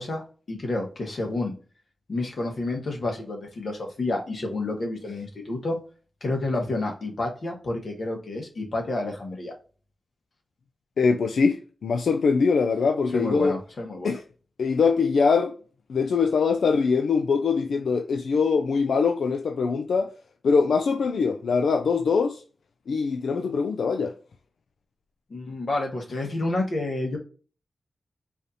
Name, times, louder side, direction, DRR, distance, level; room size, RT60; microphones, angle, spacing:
voice 1, 0.0-1.5 2.1-5.7 6.2-9.5 13.1-14.2 25.3-27.2, left 2 dB, 65° left, 1.3 m, -29 dB
voice 2, 11.0-13.6 14.0-14.2 14.6-15.5 15.9-20.1 20.4-22.4 22.9-24.2, left 5 dB, 90° left, 0.3 m, -23 dB
4.9 x 2.7 x 2.6 m
wide cardioid pair, 75°, 0 cm